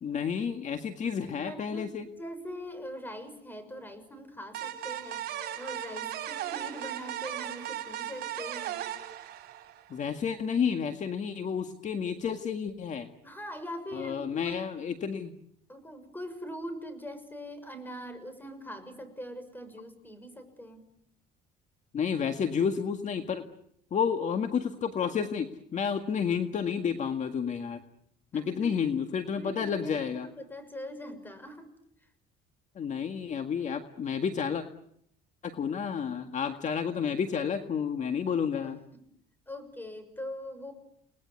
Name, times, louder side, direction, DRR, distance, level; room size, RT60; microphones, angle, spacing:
voice 1, 0.0-2.0 9.9-13.1 13.9-15.3 21.9-23.4 23.9-27.8 28.3-30.3 32.8-34.6 35.4-38.8, left 7 dB, 45° left, 7 dB, 1.9 m, -30 dB
voice 2, 1.4-8.9 13.2-14.6 15.7-20.8 28.3-28.9 29.3-31.7 32.0-32.1 36.5-36.6 38.6-39.0 39.5-40.7, equal, 10° left, 11 dB, 6.4 m, -42 dB
sound 1, 4.5-10.0, right 11 dB, 70° right, 4.5 m, -37 dB
30.0 x 20.0 x 9.6 m, 0.73 s
cardioid pair, 110°, 17 cm